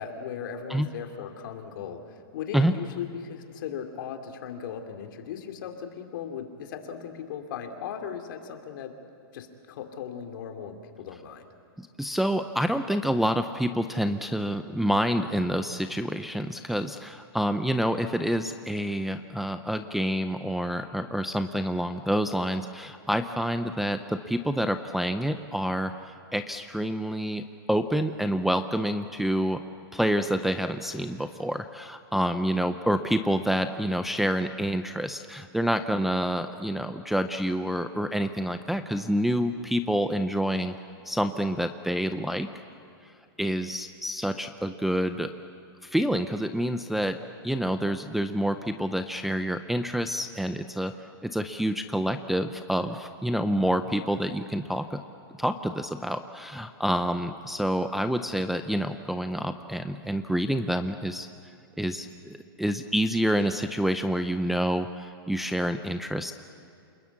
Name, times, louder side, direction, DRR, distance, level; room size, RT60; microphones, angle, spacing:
voice 1, 0.0-8.9 9.3-11.5, left 8 dB, 55° left, 5 dB, 2.7 m, -37 dB
voice 2, 11.8-29.6 29.9-40.8 41.1-42.5 43.4-45.3 45.8-51.0 51.2-55.0 55.4-61.3 61.8-66.3, equal, ahead, 7 dB, 0.5 m, -28 dB
28.5 x 21.0 x 8.4 m, 2.4 s
hypercardioid pair, 150°, 13 cm